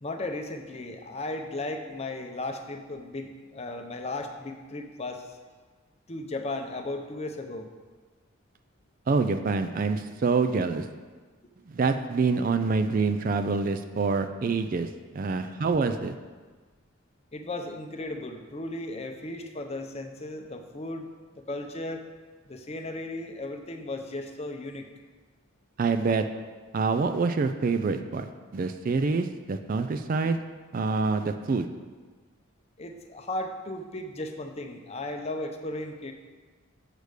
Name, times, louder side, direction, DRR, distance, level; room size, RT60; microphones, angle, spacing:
voice 1, 0.0-5.4 6.1-7.7 17.3-22.0 22.4-24.9 32.8-36.1, left 2 dB, 30° left, 4 dB, 0.6 m, -36 dB
voice 2, 9.1-10.9 11.7-14.9 15.1-16.1 25.8-26.3 26.7-30.4 30.7-31.7, right 4 dB, 40° right, 8 dB, 0.3 m, -26 dB
6.6 x 5.0 x 6.4 m, 1.4 s
head